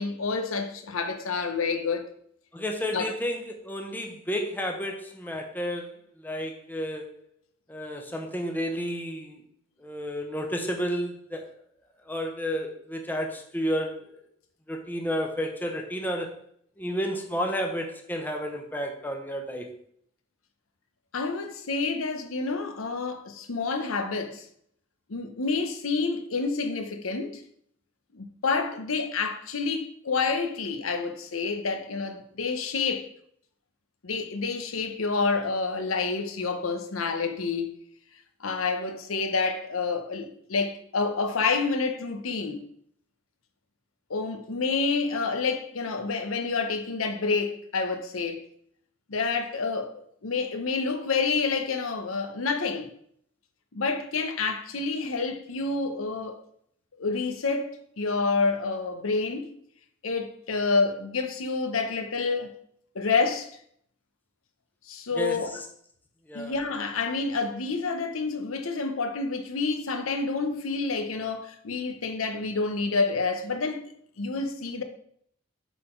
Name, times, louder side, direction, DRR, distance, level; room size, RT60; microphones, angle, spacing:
voice 1, 0.0-2.1 2.9-3.1 21.1-24.5 25.1-27.4 28.1-33.1 34.0-37.8 38.4-42.7 44.1-48.4 49.1-52.9 53.7-56.4 57.0-59.5 60.0-62.5 62.9-63.5 64.9-65.5 66.3-73.8 74.2-74.8, left 4 dB, 85° left, 0.8 m, -28 dB
voice 2, 2.5-7.2 7.7-9.4 9.8-11.5 12.1-14.1 14.7-16.3 16.8-19.7 65.2-65.4 66.3-66.5, equal, 10° left, 0.8 m, -31 dB
8.2 x 4.0 x 4.4 m
head